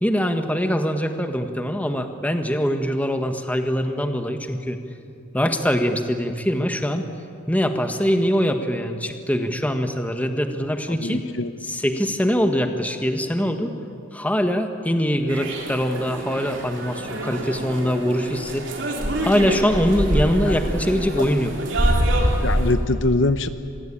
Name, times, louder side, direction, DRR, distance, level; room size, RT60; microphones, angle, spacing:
voice 1, 0.0-4.8 5.3-7.0 7.5-11.3 11.6-13.7 14.1-18.7 19.2-21.5, equal, 10° left, 6 dB, 1.5 m, -23 dB
voice 2, 10.9-11.5 20.5-20.6 21.2-21.3 22.4-23.5, left 2 dB, 65° left, 11 dB, 0.8 m, -23 dB
sound 1, 15.3-22.7, right 1 dB, 70° right, 3.6 m, -25 dB
26.0 x 21.0 x 8.8 m, 2.5 s
head